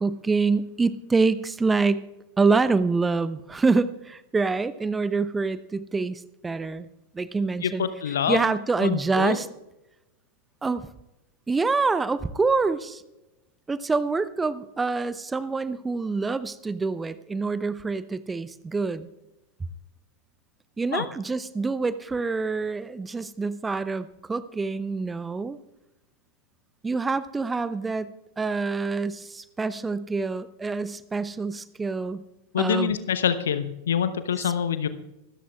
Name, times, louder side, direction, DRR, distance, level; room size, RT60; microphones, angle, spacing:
voice 1, 0.0-2.0 2.4-6.9 7.1-7.8 8.3-9.5 10.6-10.9 11.5-13.0 13.7-19.1 20.8-25.6 26.8-32.2 32.6-32.9 34.4-34.5, right 4 dB, 10° right, 16 dB, 0.6 m, -26 dB
voice 2, 7.6-8.5 8.8-9.4 20.9-21.1 32.5-34.9, left 8 dB, 65° left, 12 dB, 0.9 m, -26 dB
24.5 x 13.5 x 2.4 m, 0.96 s
figure-of-eight pair, 90°, 0 cm